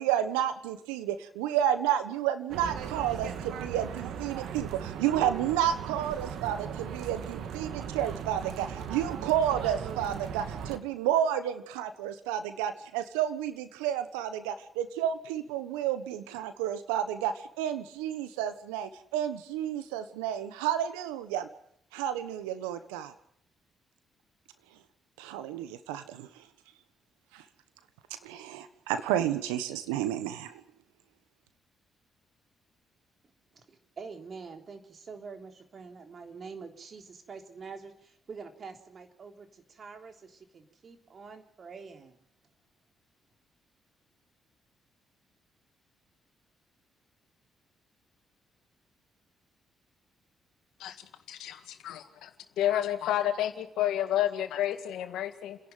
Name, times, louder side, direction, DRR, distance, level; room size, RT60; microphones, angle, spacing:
voice 1, 0.0-21.5 21.9-23.1 25.2-26.5 27.3-27.4 28.2-30.6, right 10 dB, 90° right, 11 dB, 1.3 m, -31 dB
sound 1, 2.5-10.8, right 8 dB, 70° right, 1.9 m, -38 dB
voice 2, 33.5-42.2, right 5 dB, 50° right, 5 dB, 3.5 m, -46 dB
voice 3, 51.3-52.3 52.6-55.6, left 12 dB, 75° left, 8 dB, 2.0 m, -30 dB
30.0 x 11.0 x 9.3 m, 0.69 s
hypercardioid pair, 50°, 0 cm